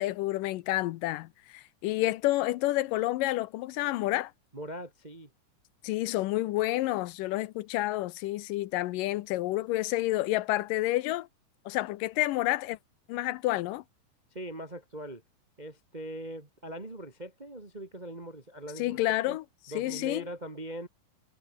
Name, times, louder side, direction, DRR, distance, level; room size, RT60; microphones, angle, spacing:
voice 1, 0.0-4.3 5.8-11.3 11.7-12.8 13.1-13.8 18.8-19.4 19.8-20.2, left 17 dB, 80° left, 2.4 m, -29 dB
voice 2, 4.5-5.3 14.3-15.2 15.6-19.0 19.3-19.4 19.7-20.9, right 1 dB, 25° right, 0.9 m, -41 dB
omnidirectional pair, 3.9 m